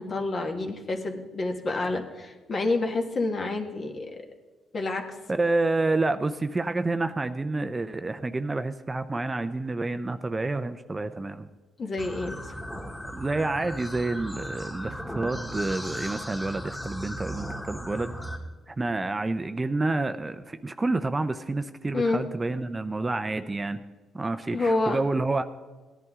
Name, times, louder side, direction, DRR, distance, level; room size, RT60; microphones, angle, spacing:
voice 1, 0.0-4.1 4.7-5.0 11.8-12.6 21.9-22.2 24.5-25.0, left 2 dB, 45° left, 3 dB, 1.6 m, -28 dB
voice 2, 5.3-11.5 13.0-18.1 18.7-23.8 24.1-25.5, right 2 dB, 20° right, 10 dB, 0.6 m, -29 dB
sound 1, 12.0-18.4, equal, 10° left, 2.0 m, -37 dB
17.5 x 10.5 x 3.7 m, 1.3 s
cardioid pair, 90°, 0 cm